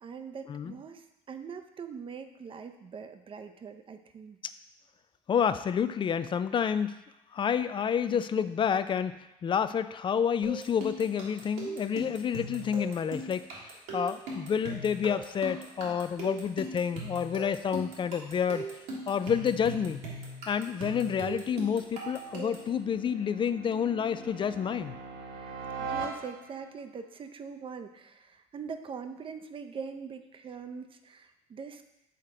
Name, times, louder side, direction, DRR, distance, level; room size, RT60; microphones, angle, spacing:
voice 1, 0.0-4.4 25.8-31.9, right 6 dB, 35° right, 7 dB, 0.6 m, -42 dB
voice 2, 5.3-7.0 7.3-9.1 9.4-13.7 13.9-18.7 19.1-20.0 20.5-24.9, left 7 dB, 35° left, 13 dB, 0.4 m, -29 dB
sound 1, 10.4-22.7, right 2 dB, 80° right, 1.6 m, -39 dB
sound 2, 20.4-26.8, right 4 dB, 65° right, 1.0 m, -42 dB
6.5 x 3.8 x 4.3 m, 0.91 s
supercardioid pair, 75°, 14 cm